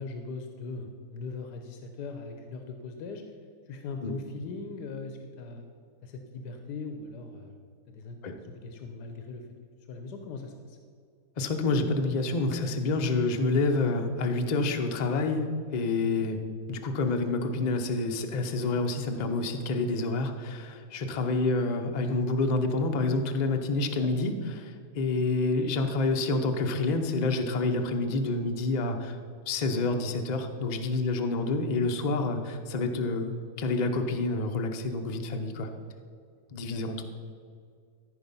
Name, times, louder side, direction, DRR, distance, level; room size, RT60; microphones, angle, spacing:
voice 1, 0.0-3.2 3.7-5.7 6.0-7.6 7.9-8.2 8.4-9.5 9.9-10.8 16.0-16.3 24.0-24.1 36.6-36.8, left 4 dB, 90° left, 5 dB, 1.4 m, -40 dB
voice 2, 11.4-16.4 16.7-29.2 29.5-33.3 33.6-35.7 36.5-37.0, left 3 dB, 40° left, 5 dB, 0.6 m, -28 dB
14.0 x 5.0 x 5.4 m, 2.2 s
omnidirectional pair, 1.7 m